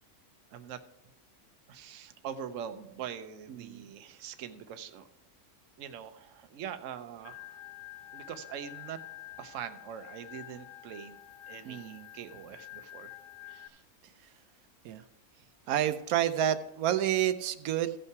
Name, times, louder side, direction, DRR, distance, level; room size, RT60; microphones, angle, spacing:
voice 1, 1.7-5.1 5.8-7.6 8.1-9.0 9.4-11.2 11.5-13.2 13.4-13.8 15.4-15.8, right 8 dB, 65° right, 9 dB, 1.0 m, -43 dB
voice 2, 3.5-3.8 11.6-12.1 14.8-15.0 15.7-17.9, right 11 dB, 90° right, 11 dB, 1.1 m, -29 dB
Organ, 7.2-13.7, left 15 dB, 70° left, 0.9 m, -49 dB
15.0 x 5.6 x 4.6 m, 0.95 s
omnidirectional pair, 1.5 m